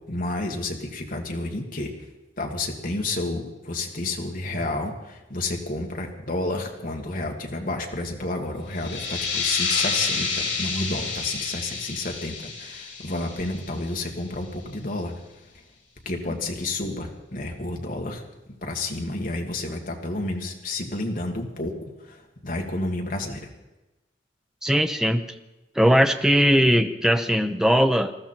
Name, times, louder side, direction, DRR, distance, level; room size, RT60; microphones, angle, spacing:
voice 1, 0.1-1.9 2.4-15.1 16.1-18.2 18.6-21.7 22.1-22.2 22.4-23.4, left 2 dB, 50° left, 1 dB, 2.0 m, -30 dB
sound 1, 8.7-14.1, left 4 dB, 75° left, 6.5 m, -29 dB
voice 2, 24.6-25.2 25.8-28.1, equal, 5° right, 8 dB, 0.7 m, -19 dB
20.0 x 14.0 x 4.5 m, 1.0 s
head